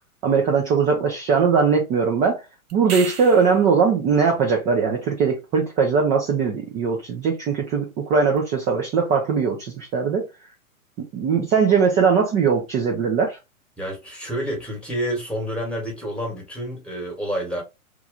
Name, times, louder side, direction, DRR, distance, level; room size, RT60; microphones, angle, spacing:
voice 1, 0.2-2.4 2.7-10.2 11.1-13.4, right 5 dB, 15° right, 0.5 m, -20 dB
sound 1, 2.7-3.7 8.3-8.4, right 6 dB, 85° right, 0.9 m, -33 dB
voice 2, 13.8-17.6, equal, ahead, 1.3 m, -29 dB
3.1 x 2.3 x 3.7 m
hypercardioid pair, 120°, 43 cm